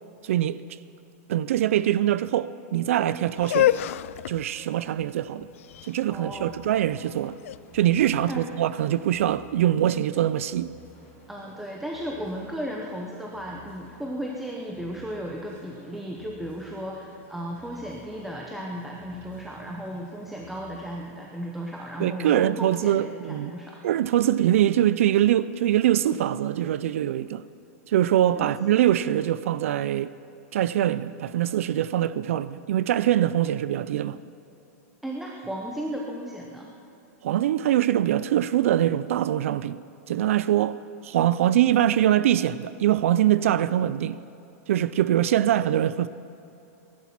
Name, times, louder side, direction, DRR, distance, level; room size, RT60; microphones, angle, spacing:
voice 1, 0.2-0.6 1.3-3.7 4.3-5.5 5.9-7.4 7.7-10.7 22.0-23.5 23.8-27.4 27.9-30.1 30.5-34.2 37.2-39.8 40.1-40.8 41.0-44.2 44.7-46.1, right 12 dB, 60° right, 0.4 m, -23 dB
sound 1, 3.4-9.3, left 13 dB, 60° left, 0.3 m, -29 dB
sound 2, 5.6-21.1, right 1 dB, 20° left, 4.0 m, -54 dB
voice 2, 6.1-6.5 8.3-8.6 11.3-23.8 28.3-28.8 35.0-36.7, equal, 5° right, 0.7 m, -35 dB
20.0 x 11.5 x 5.9 m
supercardioid pair, 180°, 8 cm